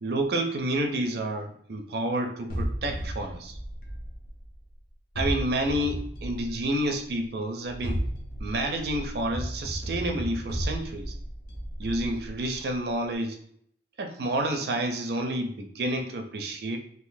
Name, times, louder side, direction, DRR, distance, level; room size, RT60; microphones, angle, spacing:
voice 1, 0.0-3.6 5.2-8.0 8.4-11.1 11.8-13.4 14.0-16.8, right 1 dB, 60° right, 5 dB, 0.5 m, -29 dB
sound 1, 2.5-4.6 5.1-7.0 7.6-12.7, equal, 55° left, 0.8 m, -34 dB
3.7 x 2.6 x 2.6 m, 0.68 s
head